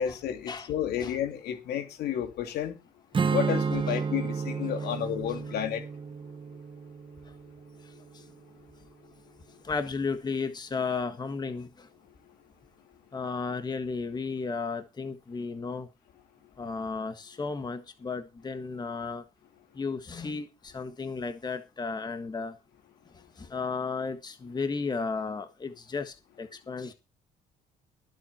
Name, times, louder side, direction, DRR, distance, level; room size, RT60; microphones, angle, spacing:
voice 1, 0.0-2.7 3.3-5.9, left 9 dB, 75° left, 2.8 m, -31 dB
Strum, 3.1-8.5, right 5 dB, 30° right, 1.1 m, -32 dB
voice 2, 9.6-11.9 13.1-15.9 16.6-19.2 19.7-22.5 23.4-26.9, left 4 dB, 25° left, 1.5 m, -34 dB
19.5 x 7.6 x 4.4 m
cardioid pair, 110°, 17 cm